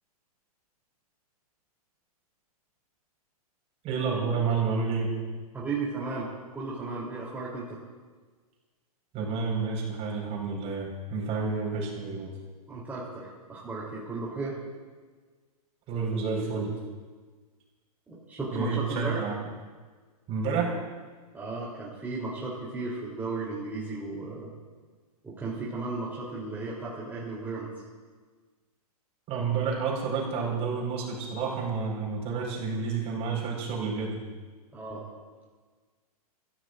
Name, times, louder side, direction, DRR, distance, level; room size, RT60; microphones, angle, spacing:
voice 1, 3.8-5.1 9.1-12.3 15.9-16.7 18.5-19.3 20.3-20.7 29.3-34.2, right 5 dB, 30° right, -1 dB, 5.1 m, -30 dB
voice 2, 5.5-7.8 12.7-14.6 18.1-19.2 21.3-24.5 25.2-27.7 34.7-35.1, right 3 dB, 10° right, -7 dB, 3.5 m, -35 dB
27.0 x 15.0 x 2.6 m, 1.5 s
hypercardioid pair, 120°, 20 cm